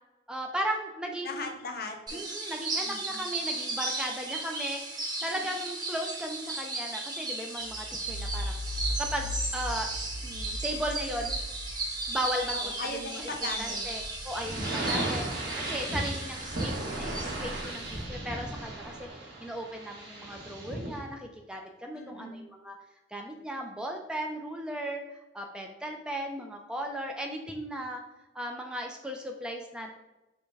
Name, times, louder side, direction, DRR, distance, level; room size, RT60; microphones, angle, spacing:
voice 1, 0.3-1.5 2.1-8.6 9.0-9.9 10.2-11.4 12.1-12.7 13.2-13.3 13.6-15.3 15.6-22.8 23.1-25.0 25.3-28.0 28.3-29.9, right 1 dB, 5° right, 2 dB, 0.4 m, -36 dB
voice 2, 1.2-2.2 2.8-3.2 12.5-13.8 21.9-22.4, left 3 dB, 55° left, 4 dB, 0.7 m, -39 dB
sound 1, 2.1-18.0, right 2 dB, 25° right, 0.9 m, -36 dB
sound 2, 7.6-15.9 16.3-18.9, equal, 85° right, 0.5 m, -39 dB
sound 3, 14.3-21.0, right 1 dB, 65° right, 1.3 m, -35 dB
5.1 x 2.1 x 4.7 m, 1.0 s
head